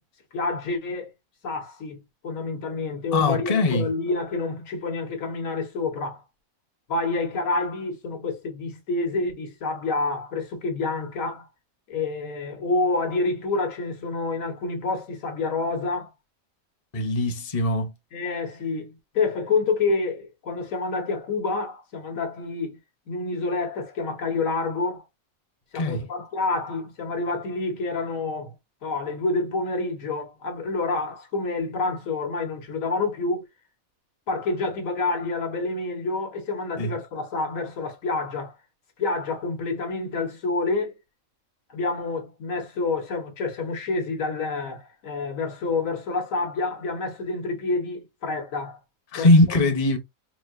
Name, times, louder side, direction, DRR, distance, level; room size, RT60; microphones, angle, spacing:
voice 1, 0.3-1.1 1.4-6.2 6.9-11.5 11.9-16.1 18.1-22.8 23.1-25.0 25.7-28.5 28.8-33.5 34.3-38.6 39.0-40.9 41.7-48.8 49.2-49.3, left 3 dB, 70° left, 1.3 m, -28 dB
voice 2, 3.1-3.9 16.9-17.9 25.7-26.1 36.8-36.9 49.1-50.0, left 2 dB, 30° left, 0.8 m, -21 dB
4.2 x 2.6 x 2.5 m
omnidirectional pair, 1.5 m